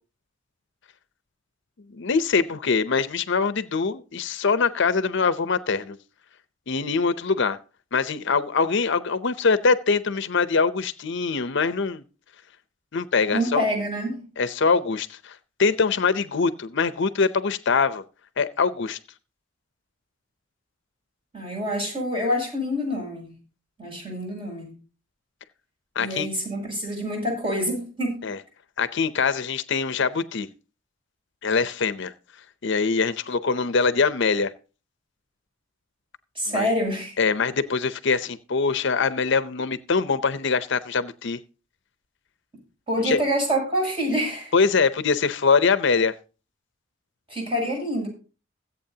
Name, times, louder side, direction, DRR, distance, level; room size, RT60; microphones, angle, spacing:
voice 1, 1.9-6.0 6.7-7.6 7.9-12.0 12.9-13.6 14.4-18.0 18.4-19.0 26.0-26.3 28.2-28.4 28.8-30.5 31.4-32.1 32.6-34.5 36.5-36.7 37.2-41.4 43.0-43.2 44.5-46.1, left 5 dB, 65° left, 0.7 m, -23 dB
voice 2, 13.3-14.2 21.3-23.3 23.8-24.7 26.0-28.2 36.4-37.2 42.9-44.5 47.3-48.1, equal, 30° right, 7.6 m, -26 dB
23.0 x 8.3 x 2.8 m
head